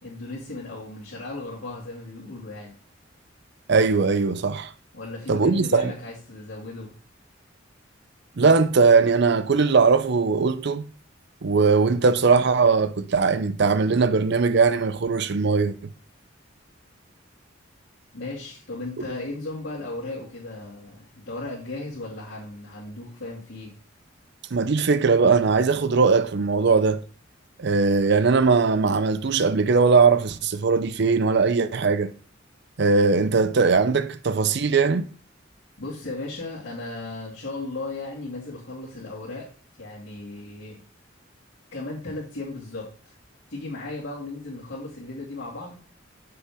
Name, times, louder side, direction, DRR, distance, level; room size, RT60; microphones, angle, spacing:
voice 1, 0.0-2.7 4.9-6.9 18.1-23.7 35.8-39.5 39.8-40.8 41.7-43.1 43.5-45.8, left 2 dB, 75° left, 2.6 m, -36 dB
voice 2, 3.7-4.7 5.3-5.9 8.4-10.8 11.4-15.8 24.5-27.0 27.6-32.1 32.8-35.0, right 4 dB, 60° right, 0.6 m, -20 dB
6.9 x 6.8 x 3.6 m
head